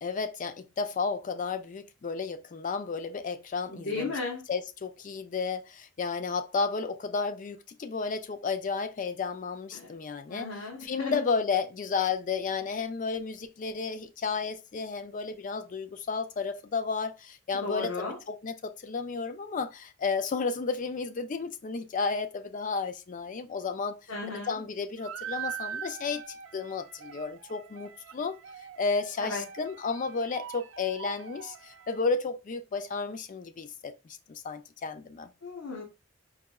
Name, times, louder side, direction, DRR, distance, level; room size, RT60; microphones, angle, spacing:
voice 1, 0.0-4.1 4.5-10.5 10.8-23.9 24.3-26.2 26.5-28.4 28.8-35.3, left 4 dB, 45° left, 0.4 m, -32 dB
voice 2, 3.7-4.4 9.7-9.9 10.3-11.2 17.6-18.2 24.1-24.6 29.2-29.4 35.4-35.8, left 3 dB, 85° left, 1.0 m, -35 dB
sound 1, 25.0-32.0, right 8 dB, 80° right, 0.4 m, -42 dB
4.7 x 2.7 x 2.3 m
head